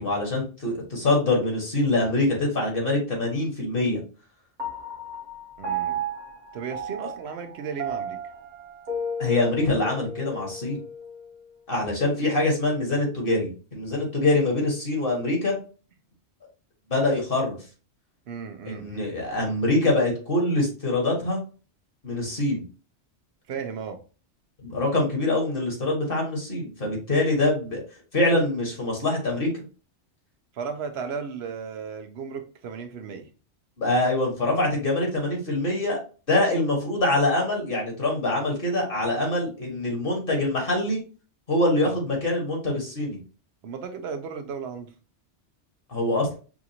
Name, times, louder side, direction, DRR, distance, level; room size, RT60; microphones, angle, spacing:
voice 1, 0.0-4.0 9.2-10.8 11.7-15.6 16.9-17.6 18.6-21.4 22.0-22.6 24.6-27.8 28.1-29.5 33.8-36.0 36.3-41.0 41.5-43.2 45.9-46.3, left 2 dB, 50° left, 1.6 m, -24 dB
Piano, 4.6-11.3, right 2 dB, 45° right, 1.1 m, -34 dB
voice 2, 5.6-6.0 6.5-8.2 18.3-19.1 23.5-24.0 30.5-33.3 41.8-42.0 43.6-44.9, right 6 dB, 65° right, 0.9 m, -35 dB
5.8 x 2.5 x 2.8 m
omnidirectional pair, 1.2 m